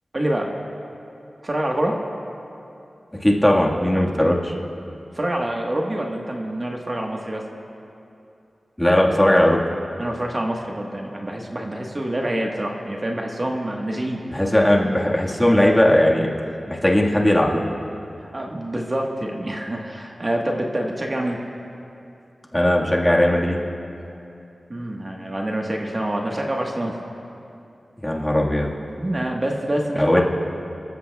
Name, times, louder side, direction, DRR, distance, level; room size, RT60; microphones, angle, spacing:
voice 1, 0.1-0.5 1.4-2.0 5.1-7.5 10.0-14.2 18.2-21.4 24.7-27.0 29.0-30.2, right 1 dB, 35° right, 0 dB, 1.3 m, -26 dB
voice 2, 3.2-4.5 8.8-9.6 14.3-16.3 16.7-17.6 22.5-23.6 28.0-28.7 30.0-30.2, left 1 dB, 15° left, -2 dB, 1.6 m, -18 dB
26.0 x 14.5 x 2.3 m, 2.7 s
wide cardioid pair, 70°, 0 cm